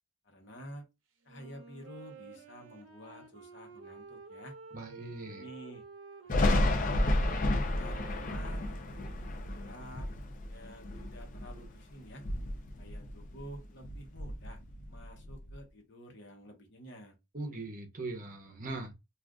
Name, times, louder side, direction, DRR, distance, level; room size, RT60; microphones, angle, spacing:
voice 1, 0.2-0.9 1.2-4.5 5.3-5.8 6.2-7.2 7.5-8.7 9.2-10.1 10.5-12.2 12.8-14.6 14.9-17.2, equal, 60° left, 1.0 m, -50 dB
Wind instrument woodwind instrument, 1.3-9.8, right 4 dB, 70° right, 0.7 m, -52 dB
voice 2, 4.7-5.5 17.3-18.9, right 2 dB, 40° right, 0.8 m, -40 dB
Thunder, 6.3-11.7 12.1-13.6 13.8-15.5, left 1 dB, 40° left, 0.5 m, -31 dB
2.5 x 2.4 x 3.5 m
head